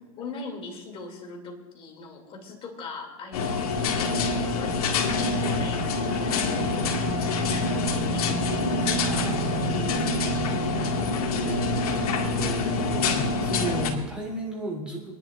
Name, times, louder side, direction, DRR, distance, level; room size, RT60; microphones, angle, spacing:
voice 1, 0.2-8.7, left 3 dB, 30° left, 1 dB, 2.7 m, -41 dB
sound 1, 3.3-13.9, left 4 dB, 80° left, 2.0 m, -26 dB
sound 2, 5.1-11.0, right 14 dB, 35° right, 0.4 m, -34 dB
voice 2, 9.0-10.1 11.4-15.2, right 1 dB, 5° right, -4 dB, 3.0 m, -34 dB
26.0 x 10.5 x 2.5 m, 1.3 s
supercardioid pair, 145°, 19 cm